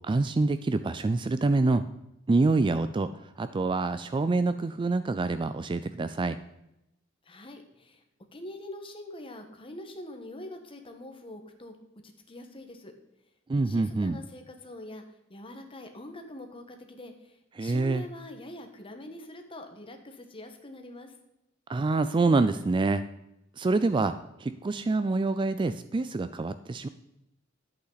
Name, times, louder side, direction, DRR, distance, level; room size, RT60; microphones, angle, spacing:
voice 1, 0.0-1.8 2.3-3.1 3.4-6.4 13.5-14.2 17.6-18.0 21.7-23.0 23.6-26.9, right 3 dB, 25° right, 12 dB, 0.3 m, -26 dB
voice 2, 7.2-8.0 8.3-11.8 12.0-12.9 13.6-15.0 15.3-21.1, left 1 dB, 25° left, 5 dB, 1.3 m, -44 dB
11.0 x 8.3 x 4.0 m, 0.87 s
head